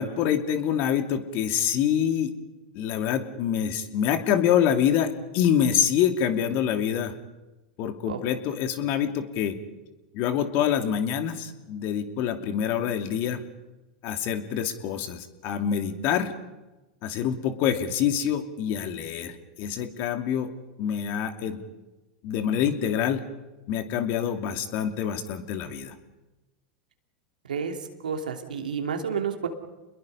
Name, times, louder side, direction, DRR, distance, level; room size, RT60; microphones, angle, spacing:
voice 1, 0.0-2.3 2.7-7.1 7.8-9.6 10.1-13.4 14.0-16.3 17.0-20.5 20.8-21.6 22.2-23.2 23.7-25.9, left 9 dB, 50° left, 7 dB, 2.6 m, -26 dB
voice 2, 28.0-29.5, right 6 dB, 85° right, 4 dB, 3.0 m, -30 dB
29.5 x 21.5 x 5.6 m, 1.1 s
hypercardioid pair, 105°, 4 cm